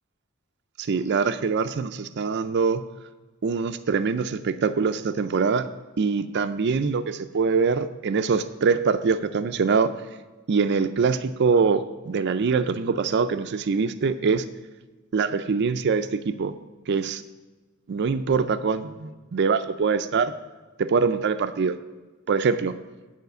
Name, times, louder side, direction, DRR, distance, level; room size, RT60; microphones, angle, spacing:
voice 1, 0.8-2.8 3.4-5.7 6.0-9.9 10.5-14.4 15.1-16.5 16.9-17.2 17.9-20.3 20.8-21.8 22.3-22.7, right 5 dB, 55° right, 10 dB, 0.4 m, -23 dB
9.3 x 5.0 x 6.7 m, 1.2 s
head